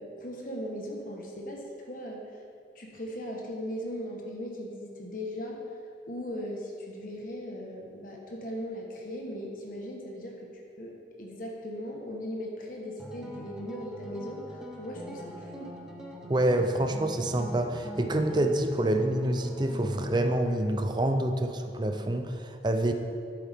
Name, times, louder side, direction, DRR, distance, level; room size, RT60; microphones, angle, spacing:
voice 1, 0.0-2.3 2.7-5.6 6.0-15.7, equal, 50° left, 0 dB, 1.3 m, -38 dB
sound 1, 13.0-20.4, equal, 5° right, 0.9 m, -41 dB
voice 2, 16.2-22.9, right 1 dB, 25° right, 6 dB, 0.6 m, -27 dB
11.0 x 8.3 x 3.6 m, 2.3 s
head